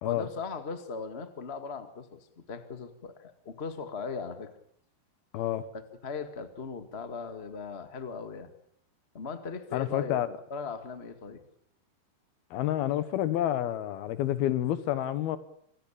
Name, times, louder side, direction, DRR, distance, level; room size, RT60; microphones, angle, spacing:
voice 1, 0.0-4.5 6.0-8.5 9.1-11.4, left 5 dB, 30° left, 9 dB, 1.2 m, -38 dB
voice 2, 9.7-10.3 12.5-15.4, left 12 dB, 75° left, 14 dB, 2.9 m, -29 dB
26.5 x 16.0 x 8.8 m, 0.68 s
omnidirectional pair, 4.7 m